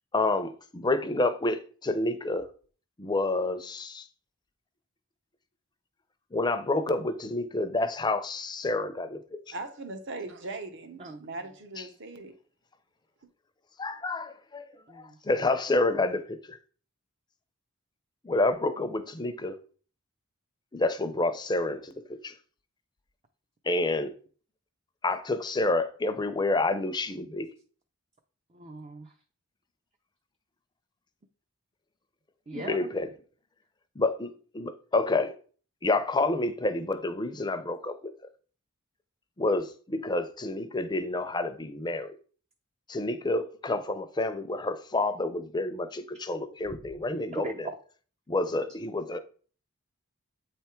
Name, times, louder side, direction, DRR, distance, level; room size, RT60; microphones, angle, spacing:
voice 1, 0.1-2.5 3.0-4.0 6.3-9.4 13.8-14.6 15.3-16.6 18.2-19.6 20.7-22.3 23.7-24.1 25.0-27.5 32.5-33.1 34.0-34.3 34.5-35.3 35.8-37.9 39.4-42.2 42.9-47.5 48.3-49.2, left 2 dB, 20° left, 0.6 m, -28 dB
voice 2, 9.5-12.3, right 2 dB, 60° right, 1.0 m, -39 dB
voice 3, 14.9-15.5 28.5-29.1 32.5-32.9 47.3-47.8 48.5-48.6, right 2 dB, 30° right, 0.6 m, -40 dB
8.3 x 3.4 x 4.4 m
head